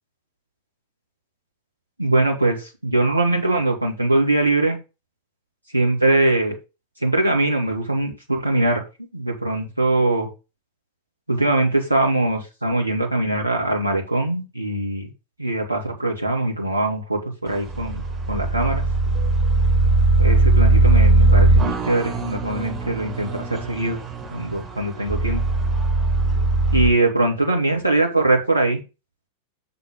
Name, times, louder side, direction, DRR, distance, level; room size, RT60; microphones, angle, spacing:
voice 1, 2.0-4.8 5.7-6.5 7.0-8.8 9.1-10.3 11.3-15.1 15.4-18.8 20.2-24.0 24.3-25.4 26.7-28.8, right 2 dB, 85° right, 1 dB, 2.5 m, -22 dB
sound 1, 17.5-26.9, right 2 dB, 30° right, 4.4 m, -19 dB
6.8 x 6.6 x 3.8 m, 0.28 s
figure-of-eight pair, 90°, 0 cm